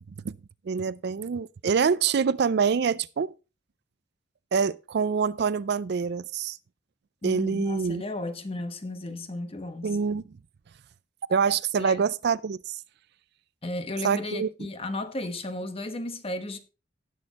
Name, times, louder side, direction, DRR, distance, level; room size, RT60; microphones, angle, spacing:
voice 1, 0.6-3.3 4.5-6.6 7.2-8.0 9.8-10.2 11.3-12.8 14.0-14.7, right 6 dB, 65° right, 0.4 m, -26 dB
voice 2, 7.2-10.0 11.8-12.0 13.6-16.6, left 2 dB, 30° left, 1.2 m, -34 dB
18.0 x 6.5 x 2.9 m
head